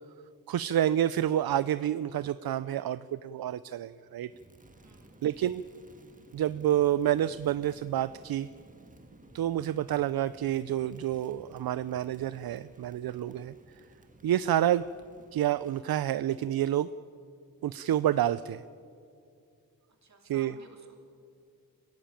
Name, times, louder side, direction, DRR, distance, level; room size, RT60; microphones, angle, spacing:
voice 1, 0.5-4.3 5.2-5.6 6.3-8.5 9.3-13.5 14.2-14.8 15.3-16.9 17.6-18.6 20.2-20.6, right 11 dB, 75° right, 16 dB, 0.5 m, -28 dB
Crackle, 4.3-15.9, right 2 dB, 20° right, 1.7 m, -56 dB
voice 2, 4.8-5.1 20.0-20.9, right 3 dB, 50° right, 3 dB, 3.0 m, -55 dB
25.5 x 16.0 x 8.9 m, 2.4 s
wide cardioid pair, 165°, 36 cm